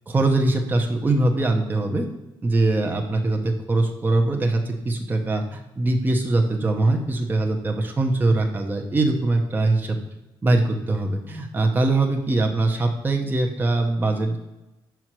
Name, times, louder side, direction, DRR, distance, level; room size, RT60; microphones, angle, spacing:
voice 1, 0.1-2.1 2.4-10.0 10.4-14.4, right 2 dB, 20° right, 2 dB, 0.8 m, -22 dB
5.5 x 4.6 x 6.1 m, 0.99 s
cardioid pair, 105°, 9 cm